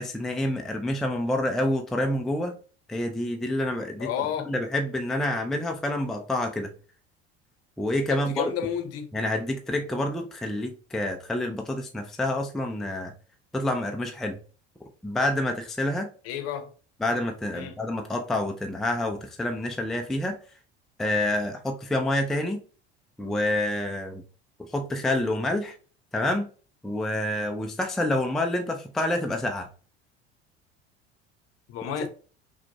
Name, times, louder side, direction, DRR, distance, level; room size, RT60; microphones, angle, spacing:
voice 1, 0.0-2.5 2.9-4.1 4.5-6.7 7.8-8.4 9.1-13.1 13.5-14.4 15.0-16.1 17.0-20.4 21.0-22.6 23.2-24.2 24.6-25.7 26.1-26.5 26.8-29.7 32.0-32.1, left 1 dB, ahead, 0.5 m, -28 dB
voice 2, 4.0-4.5 8.1-9.1 16.2-16.7 17.5-17.8 31.7-32.1, left 8 dB, 45° left, 0.9 m, -31 dB
5.8 x 2.3 x 2.9 m
figure-of-eight pair, 65°, 33 cm